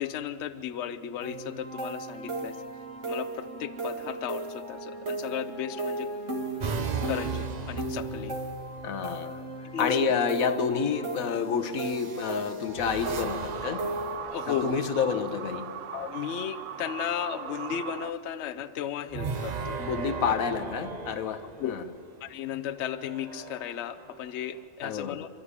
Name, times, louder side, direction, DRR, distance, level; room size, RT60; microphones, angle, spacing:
voice 1, 0.0-2.6 3.0-6.1 7.0-8.3 9.7-10.0 14.3-14.8 15.9-19.8 20.3-20.4 21.6-21.7 22.2-25.3, left 10 dB, 60° left, 12 dB, 0.9 m, -35 dB
sound 1, 1.2-14.2, right 2 dB, 60° right, 2.7 m, -36 dB
sound 2, 6.6-8.9 10.1-10.6 11.7-15.1 19.1-22.0 22.8-24.6, right 5 dB, 40° right, 0.7 m, -38 dB
voice 2, 8.8-9.4 9.8-14.0 14.5-15.7 19.8-21.8 24.8-25.2, left 6 dB, 85° left, 10 dB, 1.4 m, -29 dB
sound 3, 13.0-18.1, right 9 dB, 85° right, 1.2 m, -38 dB
26.5 x 12.5 x 9.8 m, 2.7 s
omnidirectional pair, 1.4 m